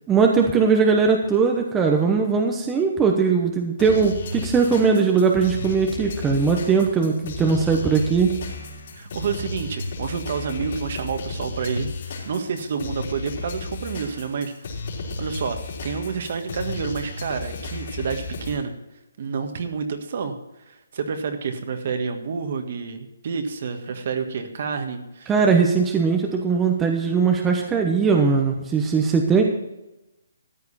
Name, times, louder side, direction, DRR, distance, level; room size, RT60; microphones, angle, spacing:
voice 1, 0.1-8.3 25.3-29.4, right 5 dB, 10° right, 2 dB, 1.0 m, -20 dB
sound 1, 3.8-18.6, left 3 dB, 45° left, 3.7 m, -34 dB
voice 2, 8.9-14.7 15.2-18.7 19.2-20.3 20.7-25.3, right 5 dB, 45° right, 6 dB, 1.7 m, -29 dB
14.0 x 9.5 x 4.2 m, 0.95 s
hypercardioid pair, 165°, 0 cm